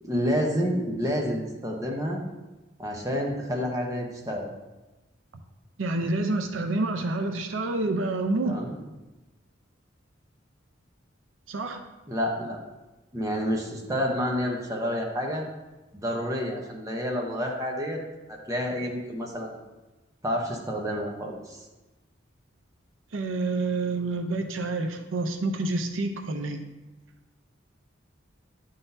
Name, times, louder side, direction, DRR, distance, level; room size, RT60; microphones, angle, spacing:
voice 1, 0.0-2.2 2.8-4.5 8.4-8.7 12.1-12.6 13.1-15.4 15.9-18.0 18.3-19.6 20.2-21.6, equal, 15° right, 0 dB, 0.8 m, -29 dB
voice 2, 5.8-8.6 11.5-11.8 23.1-26.6, right 2 dB, 80° right, 6 dB, 0.6 m, -28 dB
9.8 x 3.9 x 2.7 m, 1.1 s
head